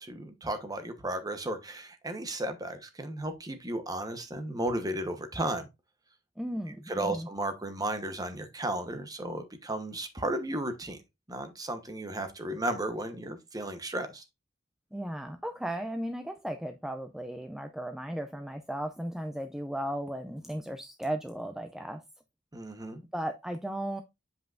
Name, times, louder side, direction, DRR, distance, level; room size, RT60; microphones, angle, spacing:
voice 1, 0.0-5.7 6.9-11.0 11.3-14.2 22.5-23.0, right 1 dB, 20° right, 1.0 m, -34 dB
voice 2, 6.4-7.3 14.9-22.0 23.1-24.0, right 1 dB, ahead, 0.4 m, -36 dB
7.8 x 5.4 x 2.5 m
head